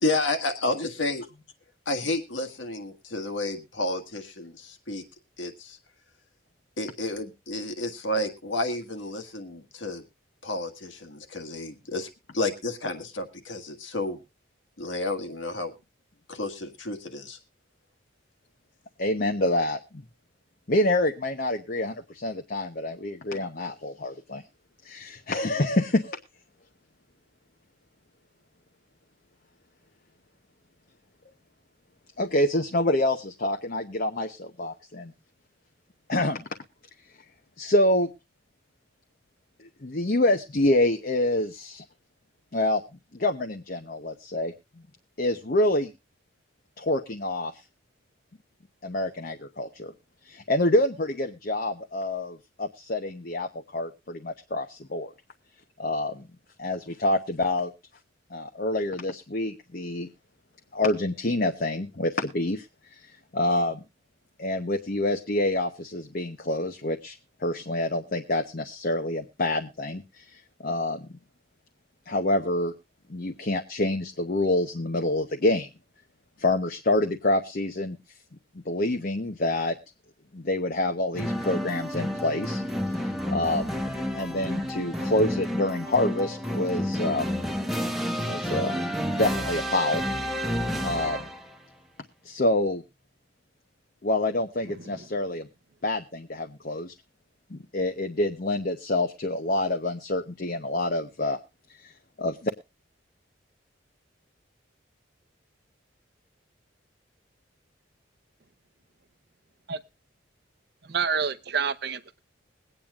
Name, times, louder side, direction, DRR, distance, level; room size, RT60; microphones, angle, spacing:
voice 1, 0.0-1.4 1.9-5.0 5.4-5.8 6.8-10.0 10.4-14.2 14.8-15.7 16.3-17.4, left 2 dB, 75° left, 7 dB, 1.7 m, -31 dB
voice 2, 19.0-19.8 20.7-24.4 24.8-26.2 32.2-35.1 36.1-36.5 37.6-38.1 39.6-41.8 42.5-42.8 43.1-44.5 45.2-45.9 46.8-47.5 48.8-49.9 50.2-55.1 55.8-56.3 56.6-57.7 58.3-60.1 60.7-62.7 62.9-63.8 64.4-71.1 72.1-72.7 73.1-75.7 76.4-78.0 78.7-79.7 80.3-83.8 84.1-87.3 88.2-88.8 89.2-90.0 90.8-91.2 92.2-92.8 94.0-95.5 95.8-96.9 97.5-101.4 101.8-102.5, left 1 dB, 45° left, 5 dB, 0.8 m, -27 dB
sound 1, 81.1-91.6, equal, ahead, 1.0 m, -30 dB
voice 3, 110.9-112.2, right 6 dB, 55° right, 11 dB, 0.7 m, -28 dB
22.0 x 8.9 x 2.4 m, 0.27 s
head